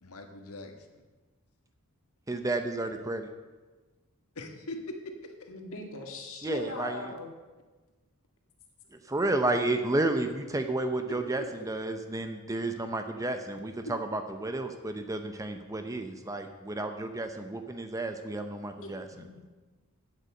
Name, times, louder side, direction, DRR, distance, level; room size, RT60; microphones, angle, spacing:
voice 1, 0.0-1.0 4.3-5.3 11.1-11.7 13.8-13.9, left 1 dB, 80° left, 5 dB, 1.4 m, -41 dB
voice 2, 2.3-3.3 6.4-7.0 9.1-19.3, right 2 dB, 15° right, 7 dB, 0.7 m, -31 dB
voice 3, 5.5-7.3 18.8-19.5, left 2 dB, 65° left, 2 dB, 1.8 m, -40 dB
8.3 x 8.2 x 7.6 m, 1.3 s
head